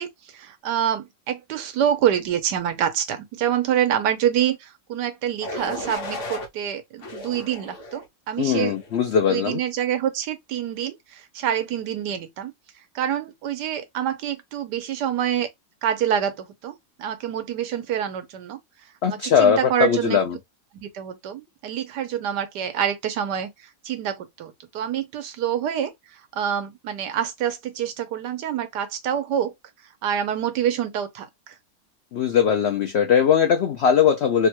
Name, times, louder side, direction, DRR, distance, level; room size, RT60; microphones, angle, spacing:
voice 1, 0.0-8.8 9.3-12.5 12.9-15.5 15.8-18.6 19.1-20.2 20.8-23.5 23.8-25.9 26.3-29.5 30.0-31.5, right 9 dB, 85° right, 1.4 m, -26 dB
sound 1, 5.4-6.5 7.0-8.1 8.6-9.0, left 2 dB, 55° left, 0.9 m, -34 dB
voice 2, 8.4-9.6 19.0-20.4 32.1-34.5, left 7 dB, 80° left, 0.5 m, -20 dB
3.4 x 2.2 x 2.8 m
omnidirectional pair, 1.7 m